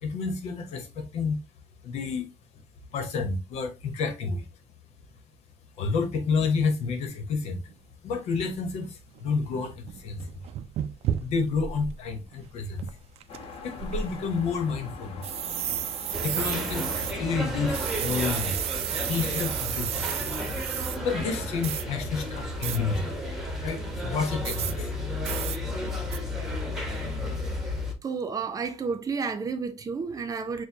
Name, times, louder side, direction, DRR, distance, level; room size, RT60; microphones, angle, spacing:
voice 1, 0.0-1.4 1.8-2.3 2.9-4.5 5.8-7.6 8.0-10.3 11.2-12.9 13.6-15.2 16.2-18.6 19.1-20.1 21.0-23.2 23.6-24.9, left 4 dB, 85° left, 1.0 m, -29 dB
sound 1, 7.7-7.8 8.5-8.6 9.2-9.3 9.5-12.0 12.3-12.4 12.8-13.4 13.8-14.6 15.2-17.1 17.7-21.0 21.6-21.8 22.6-22.8 24.4-24.7 25.2-25.6 26.1-26.2, right 11 dB, 70° right, 0.4 m, -32 dB
sound 2, 13.3-18.4, left 4 dB, 65° left, 1.1 m, -42 dB
sound 3, 16.1-27.9, left 1 dB, 5° right, 1.1 m, -33 dB
voice 2, 28.0-30.7, right 5 dB, 35° right, 0.7 m, -31 dB
6.6 x 2.2 x 2.8 m
cardioid pair, 125°, 11 cm